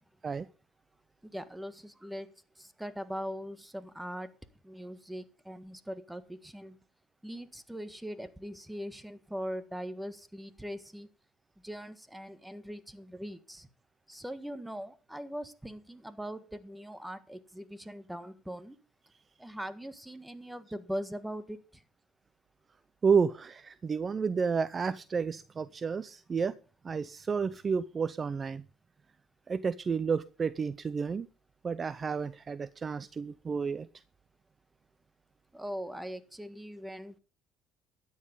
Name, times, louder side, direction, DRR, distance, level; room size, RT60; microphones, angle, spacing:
voice 1, 1.2-2.3 2.6-4.3 4.6-6.8 7.2-11.1 11.6-13.7 14.1-18.8 19.4-21.8 35.5-37.2, equal, 5° right, 13 dB, 1.6 m, -41 dB
voice 2, 23.0-26.5 26.8-28.6 29.5-31.3 31.6-33.9, right 5 dB, 35° right, 17 dB, 0.6 m, -31 dB
13.0 x 9.7 x 5.3 m, 0.35 s
supercardioid pair, 85°, 0 cm